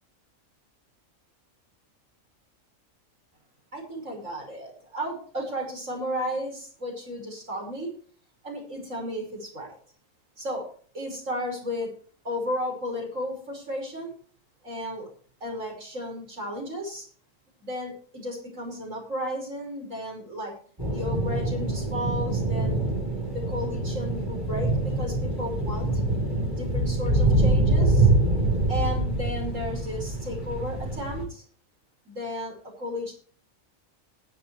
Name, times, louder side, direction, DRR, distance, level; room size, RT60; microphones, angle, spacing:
voice 1, 3.7-7.9 8.4-9.8 10.4-10.7 10.9-11.9 12.2-14.1 14.6-15.1 15.4-17.1 17.6-20.5 20.9-22.8 23.3-25.9 26.5-28.1 28.7-31.4 32.1-33.1, equal, 75° right, 0 dB, 6.1 m, -33 dB
sound 1, 20.8-31.3, right 2 dB, 20° right, 7.1 m, -25 dB
20.0 x 8.7 x 3.3 m, 0.44 s
omnidirectional pair, 1.4 m